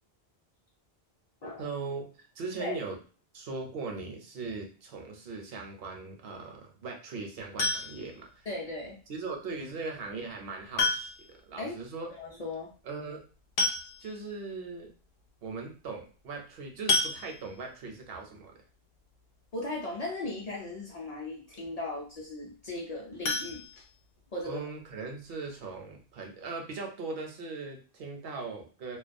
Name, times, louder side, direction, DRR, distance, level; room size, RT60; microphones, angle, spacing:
voice 1, 1.6-3.0 3.3-8.5 9.1-12.1 12.8-13.2 14.0-14.9 15.4-18.5 24.4-29.0, right 4 dB, 70° right, 2 dB, 0.8 m, -39 dB
sound 1, 7.6-8.2 9.7-9.8 10.8-11.4 11.7-11.8 12.1-12.2 13.2-13.3 13.6-14.3 14.8-14.9 15.3-15.5 16.9-17.7 23.2-24.4 24.8-24.9 25.3-25.4 25.8-25.9, left 3 dB, 80° left, 0.8 m, -30 dB
voice 2, 8.5-9.0 11.6-11.8 12.2-12.7 19.5-23.8 24.3-24.6, left 2 dB, 50° left, -2 dB, 0.5 m, -37 dB
2.3 x 2.2 x 2.5 m, 0.38 s
omnidirectional pair, 1.0 m